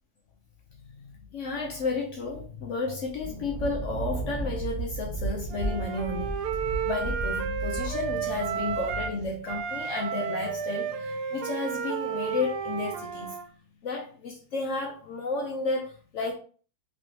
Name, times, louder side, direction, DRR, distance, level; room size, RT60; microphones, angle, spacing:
voice 1, 0.7-13.4 13.8-16.3, left 3 dB, 70° left, 0.7 m, -32 dB
Thunder, 3.0-9.7, right 2 dB, 20° right, 1.2 m, -35 dB
Wind instrument woodwind instrument, 5.5-9.2 9.4-13.4, right 7 dB, 80° right, 1.1 m, -32 dB
3.1 x 3.1 x 2.8 m
omnidirectional pair, 1.7 m